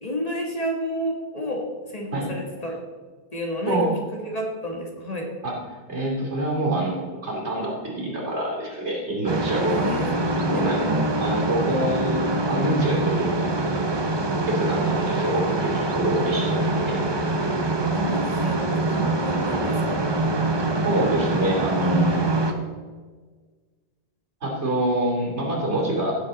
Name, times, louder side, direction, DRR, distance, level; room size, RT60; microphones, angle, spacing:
voice 1, 0.0-2.8 3.3-3.8 4.2-5.3 9.7-10.6 17.9-20.1, equal, 35° left, 0 dB, 1.6 m, -31 dB
voice 2, 5.9-9.9 10.5-13.4 14.5-17.0 20.8-22.2 24.4-26.2, right 1 dB, 85° right, -2 dB, 3.1 m, -26 dB
sound 1, 9.3-22.5, right 2 dB, 25° right, 0.8 m, -24 dB
15.5 x 7.3 x 4.0 m, 1.5 s
omnidirectional pair, 1.1 m